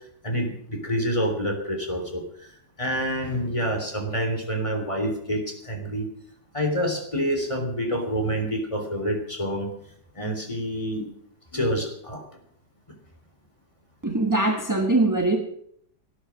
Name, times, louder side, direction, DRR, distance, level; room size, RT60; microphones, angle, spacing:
voice 1, 0.2-2.5 2.8-6.1 6.5-9.7 10.2-11.0 11.5-12.2, equal, 15° left, 3 dB, 3.4 m, -27 dB
voice 2, 14.0-15.4, right 2 dB, 10° right, 3 dB, 1.2 m, -22 dB
18.5 x 10.0 x 6.4 m, 0.67 s
omnidirectional pair, 2.0 m